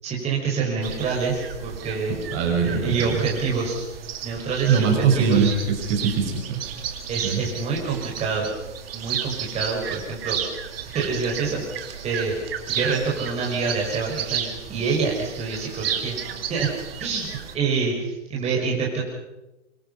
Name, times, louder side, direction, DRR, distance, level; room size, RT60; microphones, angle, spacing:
voice 1, 0.0-2.2 2.6-3.8 4.2-4.9 5.1-5.5 7.1-8.4 8.9-10.6 10.9-11.8 12.0-12.4 12.7-16.2 16.5-16.7 17.0-17.3 17.5-19.0, right 4 dB, 15° right, -2 dB, 5.6 m, -26 dB
sound 1, 0.8-17.6, right 8 dB, 50° right, 2.8 m, -33 dB
voice 2, 2.3-3.2 4.7-6.8 7.2-7.4, right 6 dB, 30° right, 2 dB, 5.8 m, -22 dB
25.5 x 23.0 x 5.6 m, 0.97 s
hypercardioid pair, 135°, 37 cm